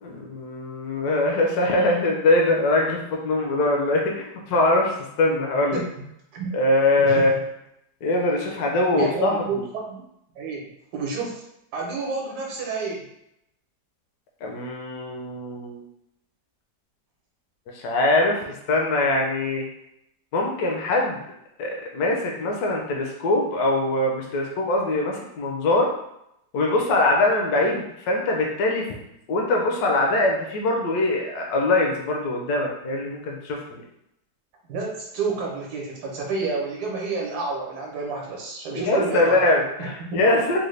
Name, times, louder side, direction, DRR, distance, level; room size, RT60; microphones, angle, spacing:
voice 1, 0.0-4.2 4.5-4.9 5.2-5.8 6.5-7.3 8.0-9.6 14.4-15.8 17.8-19.6 20.3-21.2 21.6-25.9 26.5-28.9 29.3-33.8 38.8-40.6, left 2 dB, 70° left, 0 dB, 1.1 m, -22 dB
voice 2, 7.0-7.4 8.9-10.1 10.4-10.6 10.9-11.4 11.7-13.1 34.7-39.4 39.8-39.9, right 4 dB, 70° right, -1 dB, 1.3 m, -29 dB
3.9 x 2.2 x 3.2 m, 0.80 s
omnidirectional pair, 1.8 m